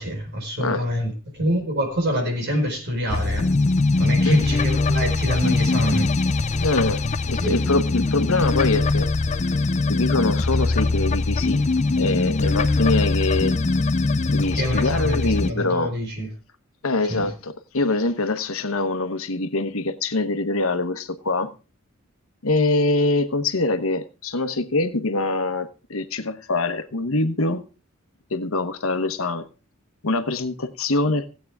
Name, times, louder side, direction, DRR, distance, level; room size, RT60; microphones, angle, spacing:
voice 1, 0.0-3.5 4.0-6.1 7.3-7.6 14.5-16.3 17.1-17.3, equal, 50° right, 2 dB, 4.7 m, -26 dB
sound 1, 3.1-15.5, left 3 dB, 35° left, 0.5 m, -22 dB
voice 2, 6.6-9.1 9.9-11.6 12.0-13.5 14.3-15.9 16.8-21.5 22.4-27.6 28.3-29.5 30.0-31.3, left 2 dB, 80° left, 10 dB, 1.2 m, -24 dB
17.0 x 8.6 x 3.5 m, 0.32 s
head